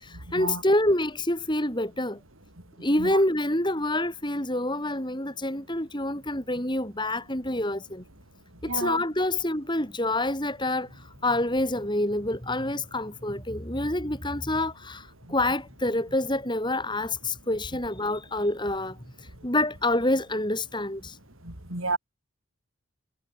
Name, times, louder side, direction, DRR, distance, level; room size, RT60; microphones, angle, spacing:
voice 1, 0.0-2.2 2.8-8.0 8.6-21.2, left 1 dB, 20° left, 5.1 m, -27 dB
voice 2, 8.7-9.0 21.4-22.0, right 3 dB, 70° right, 4.9 m, -30 dB
head